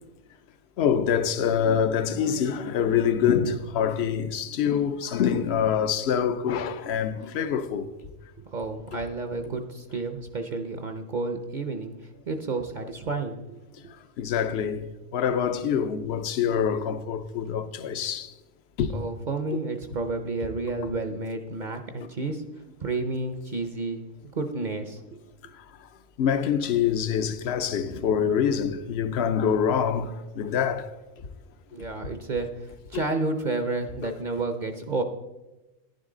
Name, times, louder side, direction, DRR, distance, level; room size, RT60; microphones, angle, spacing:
voice 1, 0.8-7.9 14.2-14.8 15.1-18.3 18.8-18.9 25.6-25.7 26.2-30.9 32.9-33.0 34.0-34.1, left 8 dB, 65° left, 0.9 m, -25 dB
voice 2, 8.4-13.6 18.9-22.4 22.8-25.2 31.7-35.0, right 3 dB, 45° right, 0.7 m, -31 dB
10.5 x 10.5 x 3.8 m
omnidirectional pair, 1.3 m